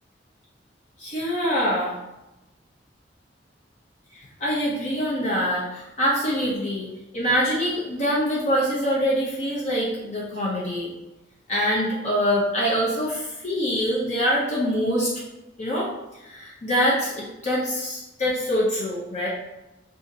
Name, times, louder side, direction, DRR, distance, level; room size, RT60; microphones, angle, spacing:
voice 1, 1.0-1.9 4.1-6.9 7.1-10.9 11.5-15.1 15.6-15.9 16.2-17.1 17.4-19.3, equal, 40° left, -5 dB, 0.6 m, -24 dB
2.8 x 2.5 x 3.8 m, 0.99 s
head